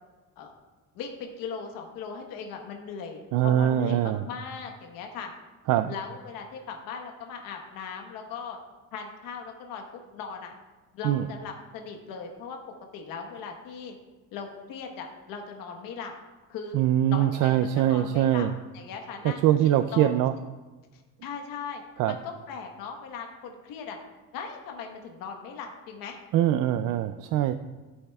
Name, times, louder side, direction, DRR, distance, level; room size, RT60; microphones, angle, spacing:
voice 1, 0.9-5.3 5.9-8.6 8.9-10.5 10.9-12.6 12.9-13.9 14.3-16.1 16.5-16.8 17.1-18.5 18.7-19.5 19.9-20.1 20.9-21.8 22.1-24.0 24.3-26.2, left 6 dB, 85° left, 3 dB, 1.3 m, -39 dB
voice 2, 3.3-4.2 5.7-5.9 11.0-11.3 16.7-18.5 19.2-20.3 22.0-22.1 26.3-27.5, right 11 dB, 70° right, 10 dB, 0.5 m, -23 dB
14.5 x 7.8 x 2.3 m, 1.3 s
cardioid pair, 130°, 33 cm